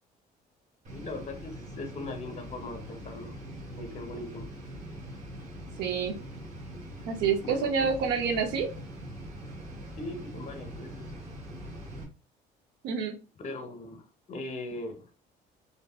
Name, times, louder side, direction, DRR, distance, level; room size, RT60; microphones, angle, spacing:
sound 1, 0.8-12.0, right 1 dB, 45° right, 1.3 m, -42 dB
voice 1, 0.9-3.3 3.7-4.5 7.4-7.9 10.0-11.1 13.4-15.1, left 2 dB, 45° left, 6 dB, 0.8 m, -40 dB
voice 2, 5.8-6.2 7.1-8.7 12.8-13.2, right 6 dB, 80° right, 6 dB, 0.7 m, -28 dB
3.5 x 2.6 x 2.3 m, 0.32 s
cardioid pair, 110°, 17 cm